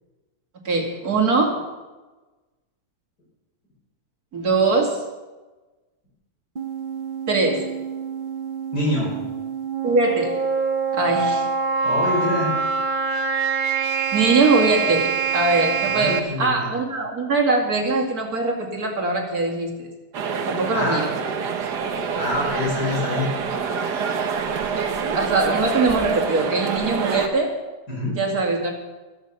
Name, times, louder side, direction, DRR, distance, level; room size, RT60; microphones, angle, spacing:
voice 1, 0.6-1.6 4.3-5.0 7.3-7.7 9.8-10.4 10.9-11.5 14.1-19.9 20.5-21.1 24.8-24.9 25.1-27.6 28.2-28.7, right 3 dB, 65° right, 1 dB, 2.8 m, -22 dB
sound 1, 6.6-16.2, right 5 dB, 35° right, 0.9 m, -25 dB
voice 2, 8.7-9.2 11.8-12.5 16.0-16.7 20.7-21.0 22.2-23.3 27.9-28.2, left 2 dB, 85° left, -2 dB, 5.9 m, -25 dB
sound 2, 20.1-27.3, right 6 dB, 80° right, 1.8 m, -26 dB
15.0 x 13.5 x 5.6 m, 1.2 s
omnidirectional pair, 1.7 m